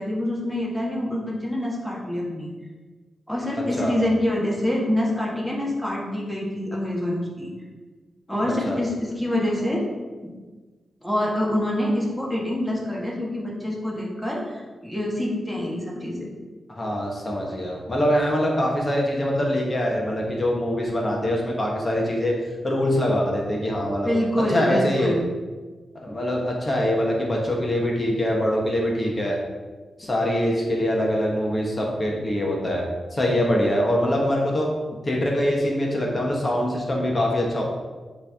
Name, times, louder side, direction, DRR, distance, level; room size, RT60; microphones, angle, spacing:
voice 1, 0.0-2.5 3.3-7.5 8.3-9.8 11.0-16.3 24.0-25.3, left 1 dB, 10° left, -4 dB, 1.8 m, -26 dB
voice 2, 8.4-8.8 16.7-22.3 22.6-24.1 24.5-25.1 26.0-29.4 30.0-32.8 33.1-34.7 35.0-37.6, equal, 30° left, -2 dB, 1.3 m, -23 dB
9.7 x 3.5 x 3.6 m, 1.3 s
wide cardioid pair, 95°, 0 cm